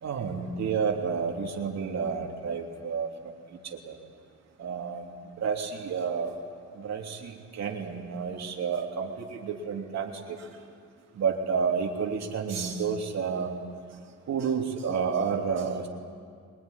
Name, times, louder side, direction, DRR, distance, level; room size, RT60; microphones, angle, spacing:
voice 1, 0.0-3.1 3.7-3.9 4.6-5.0 5.4-6.3 6.8-10.4 11.2-13.5 14.3-15.9, right 6 dB, 60° right, 1 dB, 3.1 m, -30 dB
23.5 x 20.5 x 9.9 m, 2.1 s
cardioid pair, 90°, 30 cm